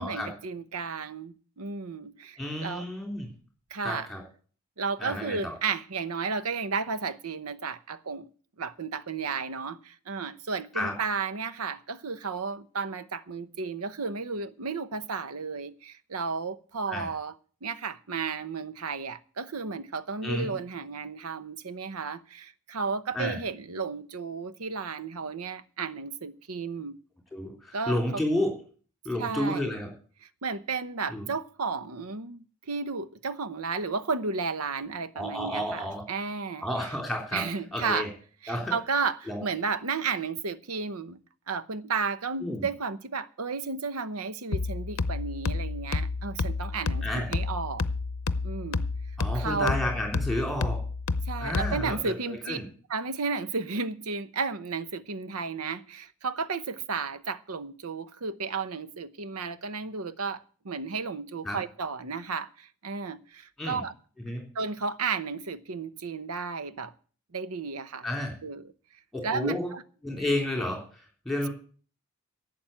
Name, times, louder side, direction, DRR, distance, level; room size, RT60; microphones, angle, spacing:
voice 1, 0.0-2.9 3.7-4.1 4.8-8.3 8.6-17.3 17.6-27.0 27.7-28.2 29.2-29.7 30.4-36.6 37.3-38.1 38.4-41.2 41.5-47.8 48.4-48.8 49.3-49.8 51.3-52.6 52.9-63.9 64.5-66.9 67.3-68.1 68.4-68.7 69.2-69.8, right 4 dB, 85° right, 0.9 m, -33 dB
voice 2, 2.4-3.3 3.8-4.2 5.0-5.5 10.7-10.9 16.9-17.1 20.2-20.5 23.1-23.4 27.3-28.5 29.0-29.9 31.1-31.3 35.1-36.0 36.6-37.5 37.7-38.1 38.5-38.7 39.3-39.4 42.4-42.6 47.0-47.3 49.2-50.8 51.4-52.6 61.4-61.6 63.6-63.8 64.2-64.5 68.0-68.3 69.1-69.7 70.0-71.5, left 1 dB, ahead, 3.3 m, -31 dB
sound 1, 44.5-52.0, left 3 dB, 70° left, 0.7 m, -30 dB
11.5 x 7.7 x 8.9 m
head